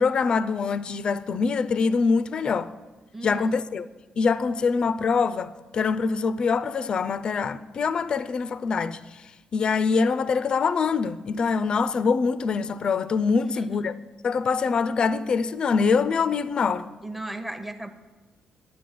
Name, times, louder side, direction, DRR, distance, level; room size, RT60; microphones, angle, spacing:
voice 1, 0.0-2.7 3.2-3.8 4.2-9.0 9.5-13.9 14.2-16.9, left 5 dB, 40° left, 0.4 m, -24 dB
voice 2, 3.1-3.6 13.3-13.8 17.0-17.9, right 2 dB, 5° right, 0.8 m, -36 dB
10.0 x 8.0 x 9.1 m
cardioid pair, 145°, 2 cm